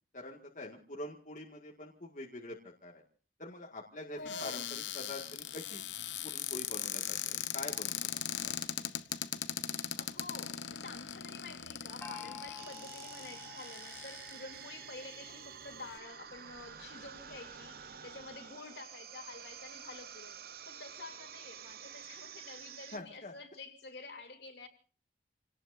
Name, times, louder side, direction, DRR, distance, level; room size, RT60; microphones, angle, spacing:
voice 1, 0.1-3.0 3.4-5.8 6.2-8.0 8.3-8.6 12.2-12.4 22.9-23.3, left 1 dB, 45° left, 2.0 m, -45 dB
voice 2, 4.1-4.7 10.0-20.4 20.7-24.7, left 3 dB, 65° left, 3.1 m, -49 dB
Cupboard open or close, 4.2-14.6 15.3-15.4 15.6-16.0, left 10 dB, 90° left, 1.0 m, -39 dB
Gong, 12.0-15.5, left 6 dB, 10° left, 2.3 m, -51 dB
sound 1, 12.6-23.0, right 8 dB, 55° right, 0.9 m, -49 dB
28.5 x 18.5 x 2.7 m
head